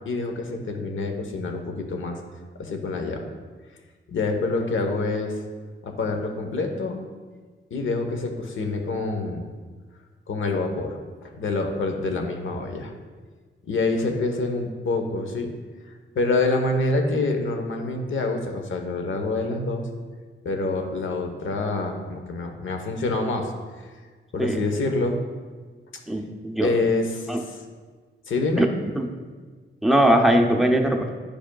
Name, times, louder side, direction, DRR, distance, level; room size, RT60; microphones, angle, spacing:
voice 1, 0.0-2.2 2.6-3.2 4.1-5.4 5.8-7.1 7.7-9.5 10.3-12.9 13.7-15.5 16.1-19.9 20.4-23.5 24.3-25.2 26.6-27.6 28.3-28.7, left 3 dB, 70° left, 4 dB, 0.9 m, -26 dB
voice 2, 26.1-26.9 27.3-27.4 28.6-28.7 28.9-29.1 29.8-31.1, right 1 dB, ahead, 2 dB, 0.6 m, -20 dB
10.5 x 5.0 x 2.3 m, 1.5 s
wide cardioid pair, 125°, 21 cm